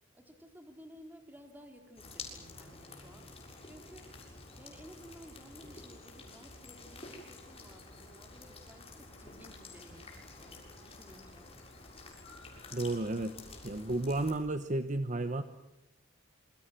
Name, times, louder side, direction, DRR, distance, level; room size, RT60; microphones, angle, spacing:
voice 1, 0.1-3.3 3.6-4.1 4.6-11.5, equal, 10° right, 4 dB, 4.0 m, -55 dB
sound 1, 2.0-14.3, left 3 dB, 30° left, 7.1 m, -50 dB
voice 2, 12.7-13.3 13.6-15.4, right 2 dB, 40° right, 9 dB, 1.1 m, -32 dB
27.5 x 25.0 x 7.6 m, 0.91 s
head